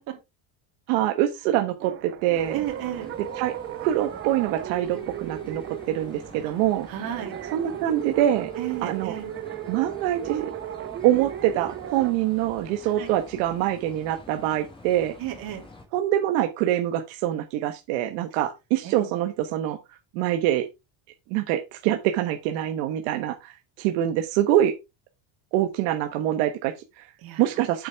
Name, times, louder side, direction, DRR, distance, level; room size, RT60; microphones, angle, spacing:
voice 1, 0.9-2.6 3.4-6.9 7.5-8.5 8.8-9.1 9.7-10.5 11.0-15.1 15.9-20.7 21.3-24.7 25.5-27.1 27.4-27.9, right 12 dB, 85° right, 1.3 m, -25 dB
sound 1, 1.8-12.1, right 11 dB, 25° right, 0.4 m, -36 dB
sound 2, 2.3-15.9, left 2 dB, 10° left, 1.6 m, -47 dB
voice 2, 2.5-3.1 6.4-6.5 6.9-7.3 8.6-9.3 12.8-13.1 15.2-15.6 18.8-19.1 27.2-27.5, right 12 dB, 45° right, 3.2 m, -33 dB
8.9 x 7.7 x 3.5 m
cardioid pair, 175°, 48 cm